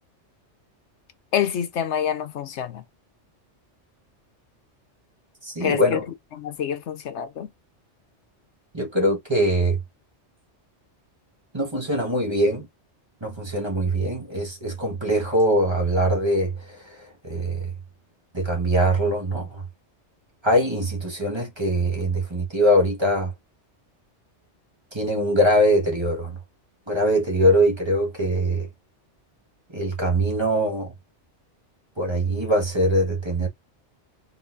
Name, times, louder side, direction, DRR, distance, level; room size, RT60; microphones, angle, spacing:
voice 1, 1.3-2.8 5.6-6.0 6.3-7.5, left 9 dB, 75° left, 0.9 m, -27 dB
voice 2, 5.4-6.0 8.7-9.8 11.5-12.7 13.2-17.7 18.3-19.6 20.4-23.3 24.9-26.4 26.9-28.7 29.7-30.9 32.0-33.5, equal, 25° right, 1.6 m, -22 dB
4.0 x 3.9 x 2.6 m
omnidirectional pair, 1.2 m